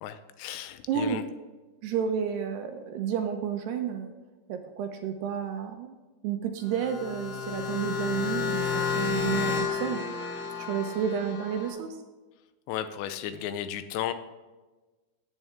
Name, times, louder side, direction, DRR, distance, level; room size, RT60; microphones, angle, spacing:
voice 1, 0.0-1.2 12.7-14.1, left 10 dB, 85° left, 10 dB, 2.8 m, -34 dB
voice 2, 0.9-1.2 1.8-4.1 4.5-5.9 6.2-10.0 10.7-12.0, right 8 dB, 80° right, 5 dB, 2.7 m, -31 dB
sound 1, 6.6-11.7, left 6 dB, 70° left, 4.5 m, -31 dB
14.5 x 9.3 x 3.5 m, 1.2 s
omnidirectional pair, 5.1 m